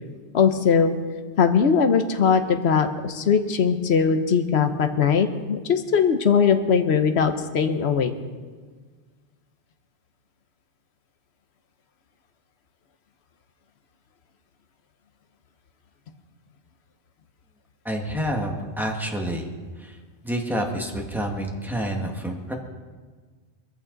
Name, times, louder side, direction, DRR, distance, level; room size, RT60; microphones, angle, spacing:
voice 1, 0.3-0.9 1.4-8.1, left 6 dB, 75° left, 8 dB, 1.2 m, -20 dB
voice 2, 17.8-19.5 19.8-20.0 20.2-22.5, equal, ahead, 0 dB, 1.8 m, -28 dB
21.5 x 14.5 x 4.0 m, 1.5 s
omnidirectional pair, 1.1 m